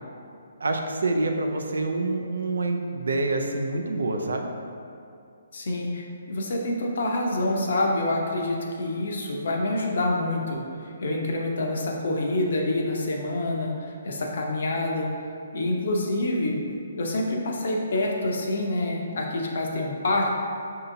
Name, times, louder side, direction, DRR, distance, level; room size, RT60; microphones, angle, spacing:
voice 1, 0.6-4.5, right 2 dB, 85° right, 3 dB, 0.4 m, -27 dB
voice 2, 5.5-15.1 15.5-16.6 17.0-20.3, left 1 dB, 65° left, 0 dB, 0.6 m, -27 dB
5.5 x 2.8 x 2.6 m, 2.5 s
hypercardioid pair, 150°, 0 cm